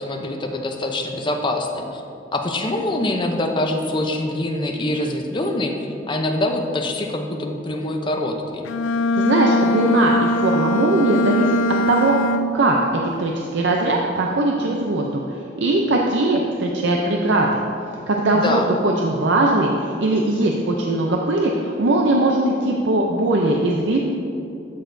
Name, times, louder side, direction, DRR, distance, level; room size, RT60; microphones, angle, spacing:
voice 1, 0.0-2.0 2.3-5.8 6.1-8.7 18.3-18.7, left 1 dB, 25° left, 3 dB, 0.6 m, -24 dB
Bowed string instrument, 8.6-12.8, left 1 dB, 80° left, 0.3 m, -21 dB
voice 2, 9.1-11.6 11.9-12.1 12.5-15.2 15.6-17.6 18.1-24.0, right 2 dB, 65° right, 0 dB, 0.5 m, -20 dB
12.5 x 6.4 x 2.6 m, 2.7 s
head